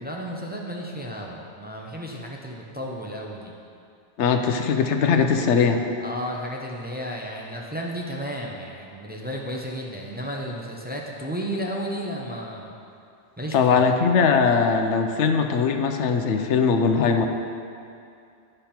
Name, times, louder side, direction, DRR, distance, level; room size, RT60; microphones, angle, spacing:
voice 1, 0.0-3.5 6.0-12.7 13.4-13.8, equal, 10° right, -2 dB, 0.5 m, -33 dB
voice 2, 4.2-5.8 13.5-17.3, left 5 dB, 80° left, 5 dB, 0.9 m, -20 dB
9.9 x 5.5 x 4.3 m, 2.5 s
omnidirectional pair, 1.2 m